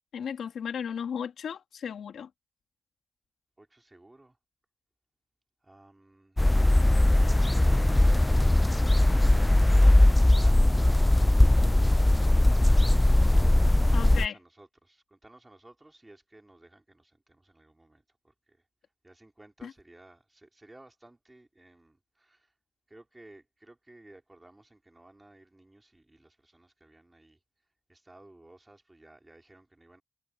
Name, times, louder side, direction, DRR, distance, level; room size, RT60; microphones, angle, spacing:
voice 1, 0.1-2.3 13.9-14.4 19.6-19.7, left 7 dB, 90° left, 1.7 m, -35 dB
voice 2, 3.6-4.4 5.6-6.4 9.9-12.8 13.9-18.6 19.0-22.5 22.9-27.4 27.9-30.0, right 2 dB, 20° right, 4.4 m, -56 dB
sound 1, 6.4-14.3, left 1 dB, 15° left, 0.3 m, -20 dB
cardioid pair, 60°, 0 cm